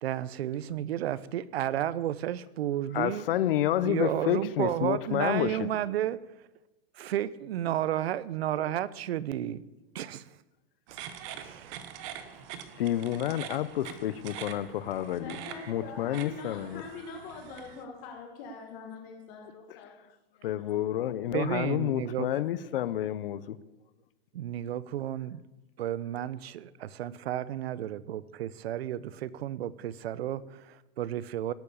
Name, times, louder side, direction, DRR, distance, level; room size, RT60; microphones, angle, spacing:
voice 1, 0.0-3.3 3.8-6.2 6.9-9.6 9.9-10.3 10.9-11.0 11.4-11.9 21.3-22.5 24.3-25.4 25.8-31.5, right 12 dB, 85° right, 0.8 m, -32 dB
voice 2, 2.9-5.7 12.8-15.3 15.7-16.8 20.4-23.6, left 12 dB, 65° left, 0.9 m, -29 dB
sound 1, 10.9-17.8, right 9 dB, 30° right, 1.1 m, -44 dB
voice 3, 15.1-21.0, left 4 dB, 30° left, 1.6 m, -44 dB
17.0 x 8.8 x 7.1 m
supercardioid pair, 175°, 30 cm